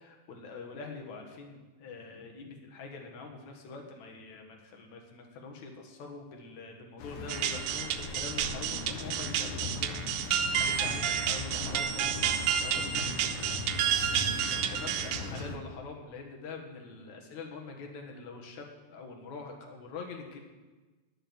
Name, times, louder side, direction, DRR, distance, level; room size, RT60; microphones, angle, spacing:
voice 1, 0.0-13.6 14.5-20.4, left 4 dB, 65° left, 2 dB, 2.9 m, -45 dB
sound 1, 7.0-15.6, left 3 dB, 85° left, 2.8 m, -39 dB
sound 2, 7.3-15.6, right 9 dB, 85° right, 2.2 m, -30 dB
10.5 x 10.0 x 7.1 m, 1.3 s
omnidirectional pair, 3.6 m